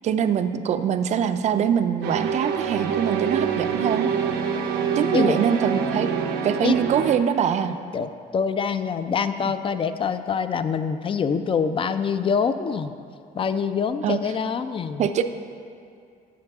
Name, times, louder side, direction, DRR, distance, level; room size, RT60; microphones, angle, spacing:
voice 1, 0.0-4.1 5.0-6.1 6.4-7.8 14.0-14.2 15.0-15.2, right 8 dB, 45° right, 10 dB, 0.4 m, -23 dB
sound 1, 2.0-7.2, right 6 dB, 80° right, 0.7 m, -25 dB
voice 2, 7.9-12.9 13.4-15.1, left 6 dB, 30° left, 11 dB, 0.4 m, -25 dB
14.0 x 4.7 x 3.5 m, 2.4 s
cardioid pair, 110°, 17 cm